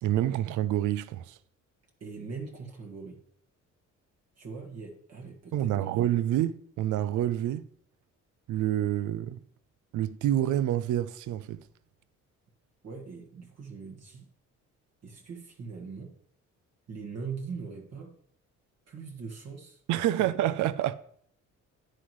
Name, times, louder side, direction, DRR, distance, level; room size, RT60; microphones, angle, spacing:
voice 1, 0.0-1.4 5.5-7.7 8.5-9.4 9.9-11.6 19.9-21.0, right 12 dB, 75° right, 0.6 m, -27 dB
voice 2, 2.0-3.2 4.4-5.9 12.8-14.3 15.0-16.1 16.9-18.1 18.9-19.8 20.2-20.3, right 5 dB, 55° right, 1.7 m, -41 dB
9.9 x 9.6 x 3.2 m
cardioid pair, 90°, 30 cm